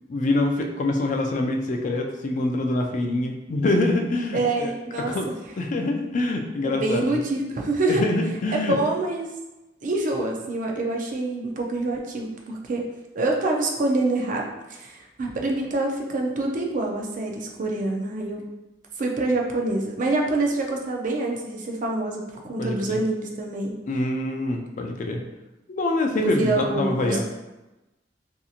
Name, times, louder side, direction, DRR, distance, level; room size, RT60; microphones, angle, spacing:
voice 1, 0.1-4.7 5.0-5.3 5.6-7.0 7.9-8.8 22.6-23.0 23.9-25.2 25.7-27.2, left 2 dB, 45° left, 3 dB, 0.3 m, -25 dB
voice 2, 4.3-5.4 6.6-8.0 8.5-9.3 9.8-18.4 19.0-23.8 26.2-27.2, right 2 dB, 50° right, 1 dB, 0.4 m, -26 dB
2.7 x 2.6 x 2.4 m, 1.0 s
head